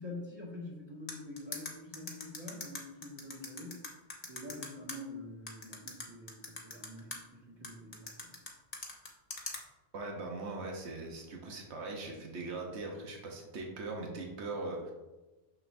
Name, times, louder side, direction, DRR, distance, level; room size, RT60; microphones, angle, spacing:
voice 1, 0.0-3.8 4.2-8.4, left 2 dB, 25° right, -6 dB, 1.9 m, -46 dB
sound 1, 1.1-5.0 5.5-7.2 7.6-9.6, left 3 dB, 40° left, 1.1 m, -41 dB
voice 2, 9.9-14.9, right 3 dB, 85° right, 0 dB, 1.3 m, -40 dB
6.6 x 6.5 x 2.6 m, 1.1 s
omnidirectional pair, 1.1 m